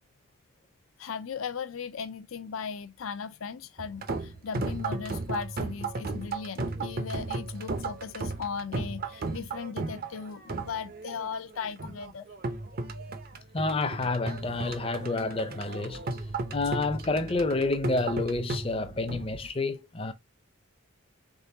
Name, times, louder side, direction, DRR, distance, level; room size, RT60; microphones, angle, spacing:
voice 1, 1.0-12.3, left 6 dB, 85° left, 0.5 m, -37 dB
sound 1, 3.8-19.5, right 3 dB, 45° right, 0.6 m, -35 dB
voice 2, 13.5-16.1 16.5-20.1, left 3 dB, 25° left, 0.6 m, -29 dB
3.7 x 3.7 x 2.7 m
head